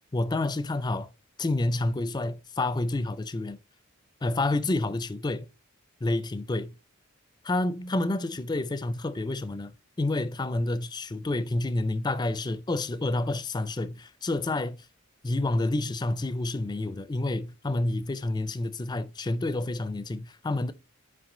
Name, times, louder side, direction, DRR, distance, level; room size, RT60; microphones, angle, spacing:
voice 1, 0.1-1.1 1.4-3.6 4.2-5.5 6.0-6.7 7.4-14.8 15.2-20.7, left 2 dB, 20° left, 0.4 m, -29 dB
6.0 x 4.7 x 3.7 m
head